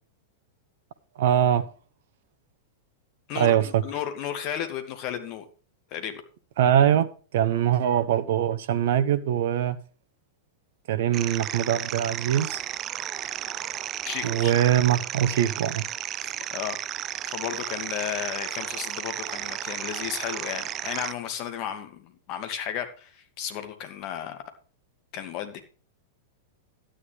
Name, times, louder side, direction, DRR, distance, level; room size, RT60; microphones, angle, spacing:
voice 1, 1.2-1.7 3.4-3.8 6.6-9.8 10.9-12.6 14.2-15.8, right 10 dB, 60° right, 0.9 m, -22 dB
voice 2, 3.3-5.5 5.9-6.2 14.0-14.6 16.2-16.8 17.2-24.4 25.1-25.6, left 9 dB, 45° left, 2.3 m, -34 dB
sound 1, 11.1-21.1, right 12 dB, 30° right, 0.4 m, -33 dB
12.0 x 10.0 x 3.4 m
figure-of-eight pair, 95°, 0 cm